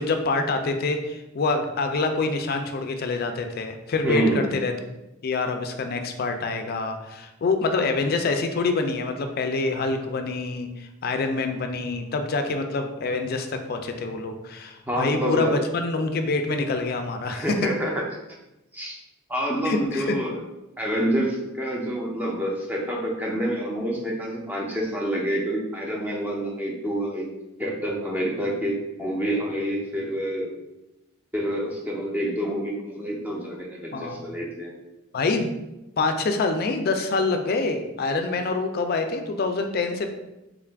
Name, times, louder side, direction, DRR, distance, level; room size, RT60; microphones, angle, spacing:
voice 1, 0.0-4.7 5.2-17.6 19.6-20.1 33.9-34.3 35.1-35.5 36.0-40.1, left 3 dB, 45° left, 6 dB, 0.4 m, -26 dB
voice 2, 4.0-4.5 14.9-15.6 17.3-18.0 18.7-19.0 19.3-20.4 20.8-27.3 27.6-30.5 31.3-34.7, equal, 10° right, -2 dB, 0.5 m, -27 dB
3.6 x 2.4 x 3.4 m, 0.97 s
head